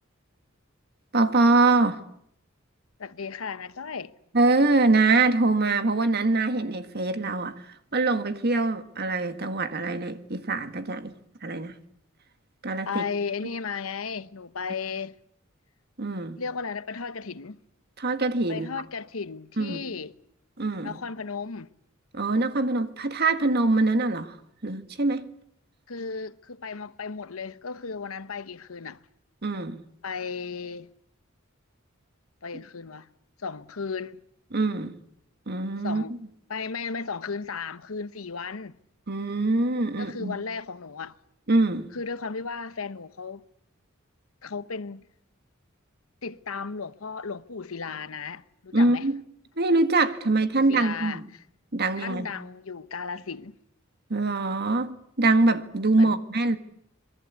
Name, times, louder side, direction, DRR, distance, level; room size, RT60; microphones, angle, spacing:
voice 1, 1.1-2.0 4.3-7.6 7.9-11.1 11.4-11.7 12.6-13.0 16.0-16.4 18.0-18.7 19.6-19.8 20.6-20.9 22.1-24.4 24.6-25.3 29.4-29.8 34.5-35.0 35.5-36.0 39.1-40.3 41.5-41.9 48.7-49.2 49.6-51.2 51.7-52.3 54.1-56.6, right 2 dB, 50° right, 1.7 m, -24 dB
voice 2, 3.0-4.1 12.8-15.2 16.4-17.6 18.5-20.2 20.8-21.7 25.9-29.0 30.0-30.9 32.4-33.1 33.4-34.2 35.8-36.1 36.5-38.8 40.0-41.2 41.9-43.4 44.4-45.0 46.2-49.0 50.7-51.4 52.0-53.6 56.0-56.2, left 5 dB, 90° left, 1.0 m, -35 dB
26.5 x 21.0 x 8.3 m
head